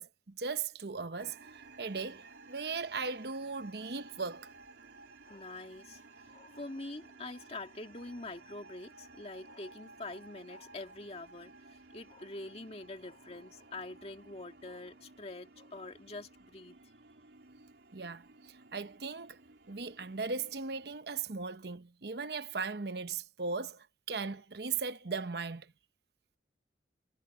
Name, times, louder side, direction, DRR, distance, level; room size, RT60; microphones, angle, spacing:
voice 1, 0.0-1.4 1.8-4.5 17.9-19.4 19.7-25.7, right 4 dB, 65° right, 0.9 m, -38 dB
sound 1, 1.2-21.0, right 3 dB, 85° right, 4.5 m, -56 dB
voice 2, 5.3-16.9, left 2 dB, 35° left, 2.1 m, -45 dB
head